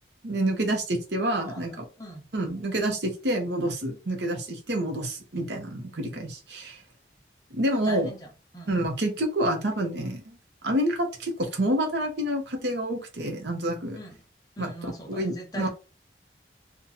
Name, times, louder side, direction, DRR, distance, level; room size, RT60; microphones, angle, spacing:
voice 1, 0.2-1.7 2.3-6.8 7.5-8.1 8.7-10.4 10.6-14.0 14.6-14.7 15.1-15.7, right 1 dB, 75° right, 4 dB, 0.9 m, -28 dB
voice 2, 1.2-2.3 7.7-8.3 8.5-8.8 13.9-14.2 14.6-15.7, equal, 20° left, 3 dB, 0.7 m, -41 dB
2.8 x 2.3 x 3.9 m, 0.31 s
head